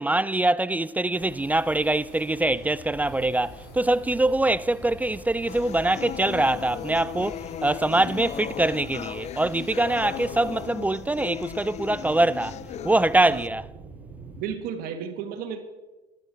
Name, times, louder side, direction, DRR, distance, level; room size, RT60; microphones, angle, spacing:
voice 1, 0.0-12.6 12.8-13.6, right 2 dB, 10° right, 0.4 m, -24 dB
sound 1, 1.1-10.7, left 4 dB, 75° left, 6.7 m, -47 dB
Earth tectonic movements, 2.4-14.4, right 3 dB, 30° right, 3.8 m, -46 dB
sound 2, 5.5-13.5, left 11 dB, 45° left, 0.5 m, -37 dB
voice 2, 14.4-15.6, right 8 dB, 70° right, 2.0 m, -33 dB
13.0 x 12.0 x 6.4 m
supercardioid pair, 100°, 16 cm